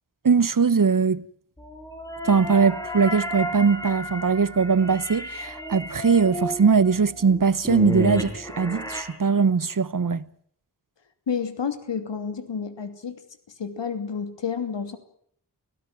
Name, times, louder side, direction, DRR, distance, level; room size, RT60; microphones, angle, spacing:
voice 1, 0.2-1.2 2.2-10.2, right 5 dB, 50° right, 1.1 m, -21 dB
sound 1, 1.6-9.0, equal, 10° left, 5.5 m, -32 dB
voice 2, 11.3-13.2 13.6-15.0, left 6 dB, 90° left, 2.9 m, -30 dB
25.0 x 17.0 x 9.3 m
wide cardioid pair, 60°, 42 cm